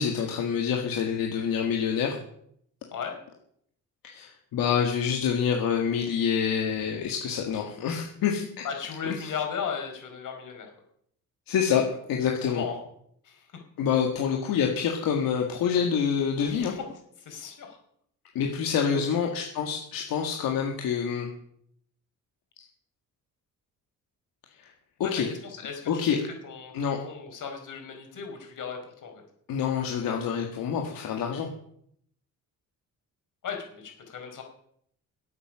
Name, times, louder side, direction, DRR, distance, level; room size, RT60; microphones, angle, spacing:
voice 1, 0.0-2.2 4.0-8.7 9.2-9.3 11.5-11.8 12.1-12.6 13.8-16.7 18.3-21.3 24.6-24.7 25.0-25.3 25.9-26.2 26.7-27.0 29.5-31.5, left 7 dB, 85° left, 1 dB, 2.0 m, -27 dB
voice 2, 8.6-10.7 12.4-12.8 13.2-13.5 16.4-16.8 17.2-17.8 18.9-19.3 25.0-26.1 26.4-29.2 33.4-34.4, left 6 dB, 65° left, 3 dB, 4.7 m, -36 dB
17.5 x 8.6 x 6.2 m, 0.69 s
cardioid pair, 115°, 34 cm